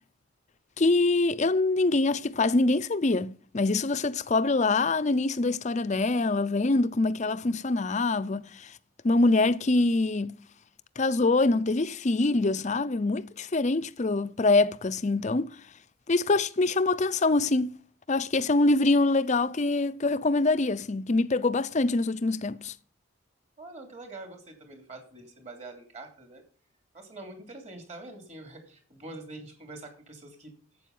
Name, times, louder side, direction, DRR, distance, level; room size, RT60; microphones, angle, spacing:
voice 1, 0.8-8.7 9.0-10.3 11.0-15.6 16.1-17.7 18.1-22.7, left 2 dB, 35° left, 0.5 m, -24 dB
voice 2, 23.6-26.4 26.9-30.5, right 2 dB, 35° right, 3.1 m, -45 dB
12.0 x 8.2 x 5.5 m
head